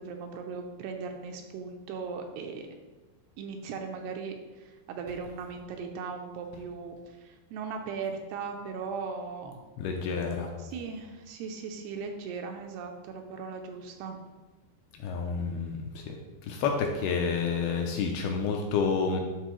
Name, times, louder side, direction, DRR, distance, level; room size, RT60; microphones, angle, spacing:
voice 1, 0.0-2.7 3.4-9.6 10.6-14.2, right 5 dB, 80° right, 4 dB, 2.5 m, -38 dB
voice 2, 9.8-10.5 14.9-16.2 16.4-19.2, left 5 dB, 80° left, 2 dB, 2.3 m, -29 dB
11.5 x 4.1 x 3.0 m, 1.2 s
omnidirectional pair, 4.8 m